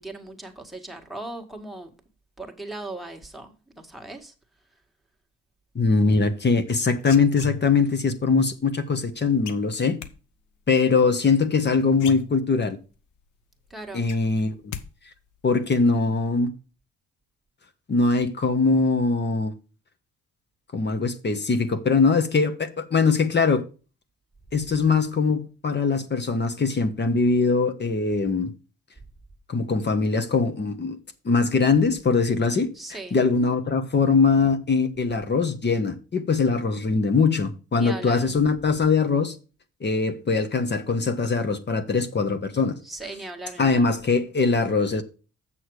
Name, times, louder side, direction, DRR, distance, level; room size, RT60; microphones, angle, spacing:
voice 1, 0.0-1.9 2.4-4.3 13.7-14.1 32.7-33.2 37.8-38.3 42.8-43.9, right 2 dB, ahead, 1.8 m, -38 dB
voice 2, 5.7-10.0 10.7-12.8 13.9-14.7 15.4-16.5 17.9-19.5 20.7-23.6 24.5-28.5 29.5-31.0 31.2-32.7 33.1-39.3 39.8-42.8 43.6-45.0, left 4 dB, 35° left, 1.3 m, -22 dB
sound 1, 6.7-8.0 9.4-10.1 11.5-11.6 11.9-12.8 13.2-13.3 13.6-14.9 15.1-15.6, left 10 dB, 80° left, 1.0 m, -38 dB
7.7 x 6.5 x 4.8 m
cardioid pair, 90°, 30 cm